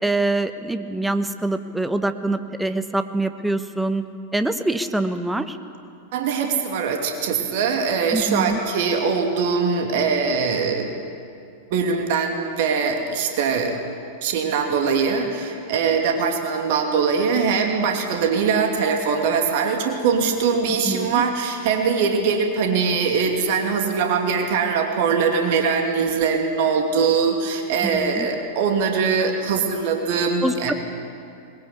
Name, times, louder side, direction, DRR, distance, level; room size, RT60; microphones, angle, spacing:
voice 1, 0.0-4.0 4.3-5.6 8.1-8.6 20.8-21.2 27.9-28.3 30.4-30.7, right 2 dB, 5° right, 9 dB, 1.3 m, -24 dB
voice 2, 6.1-10.9 11.7-13.7 14.2-30.7, right 5 dB, 50° right, 3 dB, 2.9 m, -22 dB
21.5 x 21.0 x 8.5 m, 2.5 s
figure-of-eight pair, 90°, 0 cm